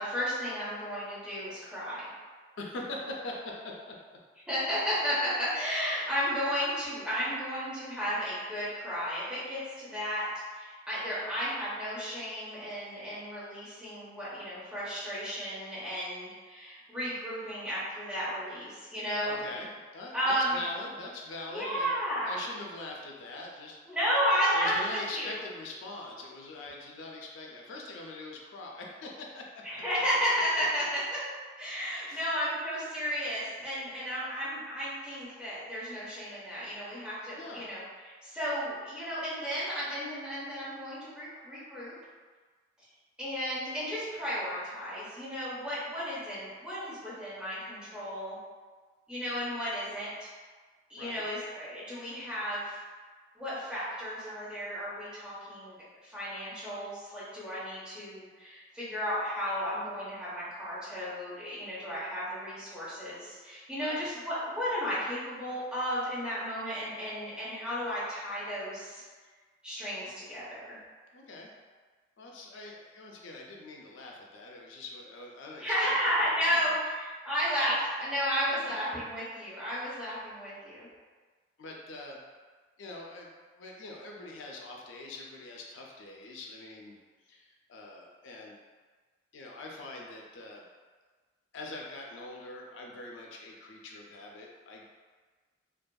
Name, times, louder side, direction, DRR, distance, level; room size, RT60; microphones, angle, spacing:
voice 1, 0.0-2.1 4.5-10.3 10.5-19.4 20.1-20.6 21.5-22.3 23.9-25.4 29.6-31.2 31.6-41.9 43.2-48.4 49.1-50.3 50.9-52.8 53.3-55.8 56.0-69.0 69.6-70.8 75.6-80.9, equal, 5° right, -11 dB, 0.8 m, -33 dB
voice 2, 2.6-4.0 19.2-19.7 19.9-21.9 22.2-23.8 24.5-29.5 32.1-32.3 37.3-37.7 51.0-51.2 63.8-64.0 71.1-71.5 72.2-75.9 76.5-76.7 78.5-78.7 81.6-82.2 82.8-83.3 83.6-87.0 87.2-88.6 89.3-90.7 91.5-94.8, left 2 dB, 85° left, -1 dB, 0.4 m, -43 dB
2.7 x 2.5 x 2.2 m, 1.5 s
head